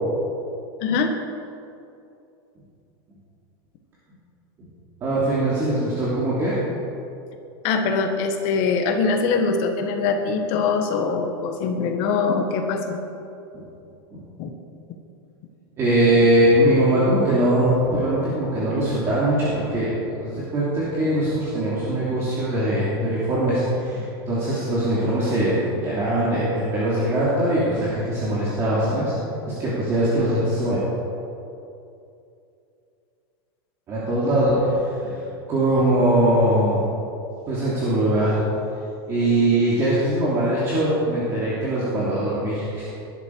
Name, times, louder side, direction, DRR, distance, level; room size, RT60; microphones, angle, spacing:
voice 1, 0.8-1.1 7.6-13.0 14.4-14.5, left 4 dB, 35° left, 4 dB, 1.6 m, -23 dB
voice 2, 5.0-6.6 13.5-13.6 14.1-14.2 15.8-19.9 20.2-29.1 29.5-30.8 33.9-34.7 35.0-35.2 35.5-36.8 37.5-38.4 39.1-42.9, right 1 dB, 20° right, -8 dB, 2.9 m, -21 dB
20.5 x 11.5 x 4.8 m, 2.7 s
supercardioid pair, 180°, 13 cm